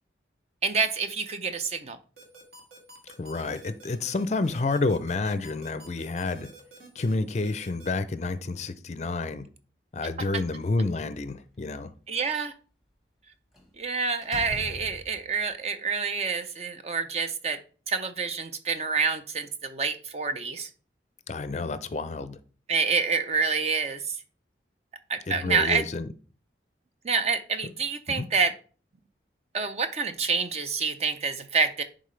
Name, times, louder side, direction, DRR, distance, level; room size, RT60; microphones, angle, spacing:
voice 1, 0.6-2.0 12.1-12.5 13.8-17.6 17.9-20.7 22.7-24.0 25.1-25.8 27.0-28.5 29.5-31.8, right 5 dB, 35° right, 0.5 m, -27 dB
sound 1, 2.2-7.9, right 3 dB, 60° right, 1.9 m, -49 dB
voice 2, 3.2-6.5 7.0-9.5 9.9-11.9 21.3-22.4 25.3-26.1 27.6-27.7 28.1-28.3, left 3 dB, 40° left, 0.4 m, -29 dB
Slam, 10.5-11.4 13.5-13.8 14.2-15.4, left 1 dB, ahead, 1.3 m, -42 dB
10.5 x 3.8 x 3.2 m
head